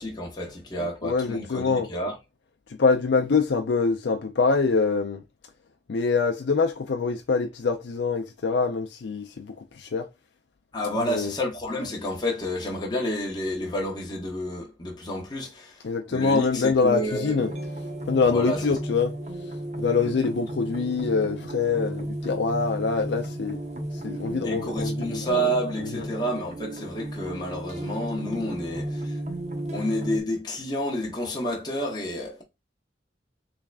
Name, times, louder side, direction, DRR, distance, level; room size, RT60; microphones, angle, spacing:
voice 1, 0.0-2.2 10.7-15.8 16.1-17.3 18.3-18.7 20.0-20.1 24.4-29.2 29.7-32.4, equal, 20° left, 0.8 m, -30 dB
voice 2, 0.8-1.9 2.8-5.2 5.9-10.1 11.1-11.3 15.8-17.5 18.1-19.1 19.8-23.6 24.0-25.3 25.9-26.1, left 4 dB, 70° left, 0.5 m, -24 dB
sound 1, 17.4-30.2, right 1 dB, 35° right, 0.8 m, -34 dB
3.5 x 3.2 x 2.4 m
head